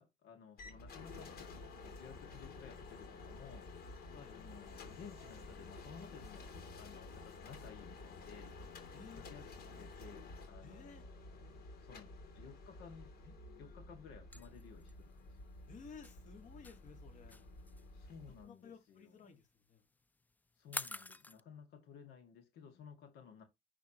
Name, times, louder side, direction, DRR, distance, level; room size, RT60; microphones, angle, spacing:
voice 1, 0.0-3.7 4.3-8.5 9.1-15.4 17.9-19.4 20.6-23.4, left 6 dB, 85° left, 2.0 m, -56 dB
sound 1, 0.6-18.4, left 3 dB, 65° left, 2.9 m, -52 dB
voice 2, 8.9-9.3 10.6-11.0 15.7-17.4 18.4-19.8, left 5 dB, 45° left, 1.8 m, -55 dB
sound 2, 14.3-21.4, left 3 dB, 10° left, 0.4 m, -48 dB
10.5 x 3.7 x 3.0 m
cardioid pair, 110°, 17 cm